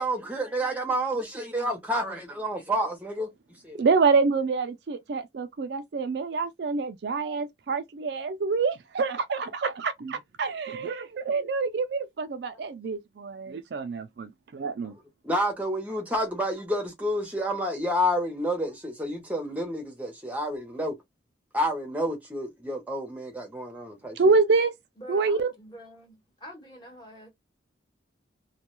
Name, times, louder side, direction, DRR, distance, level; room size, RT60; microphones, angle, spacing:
voice 1, 0.0-3.3 3.6-3.9 15.2-20.9 21.5-24.3, equal, 10° right, 0.7 m, -29 dB
voice 2, 3.8-15.0 24.2-24.7 25.1-25.5, right 4 dB, 60° right, 0.4 m, -26 dB
voice 3, 25.0-27.3, equal, 20° left, 1.1 m, -46 dB
2.2 x 2.2 x 3.0 m
head